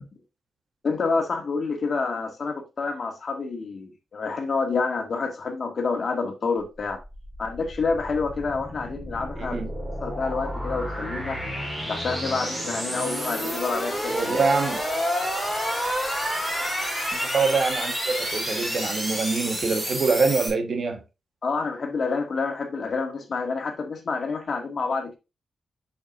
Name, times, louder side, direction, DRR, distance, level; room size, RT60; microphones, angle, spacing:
voice 1, 0.8-7.0 7.4-9.6 10.0-11.4 11.9-14.4 21.4-25.2, left 4 dB, 50° left, 1.8 m, -28 dB
sound 1, 6.8-20.5, equal, 15° right, 3.9 m, -29 dB
voice 2, 14.1-14.8 17.1-21.0, right 4 dB, 55° right, 1.3 m, -25 dB
7.3 x 6.0 x 2.5 m
wide cardioid pair, 110°, 0 cm